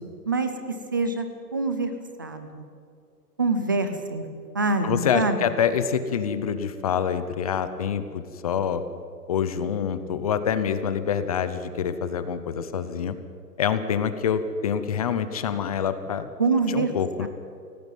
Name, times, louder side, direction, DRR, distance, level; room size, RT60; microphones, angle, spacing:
voice 1, 0.9-1.3 1.5-1.9 2.2-2.6 3.4-4.2 4.5-5.4 16.4-16.9 17.2-17.3, right 3 dB, 15° right, 8 dB, 0.5 m, -24 dB
voice 2, 4.8-8.8 9.3-13.1 13.6-16.3 16.7-17.3, left 7 dB, 25° left, 11 dB, 0.7 m, -26 dB
17.5 x 17.5 x 9.2 m, 2.3 s
hypercardioid pair, 160°, 48 cm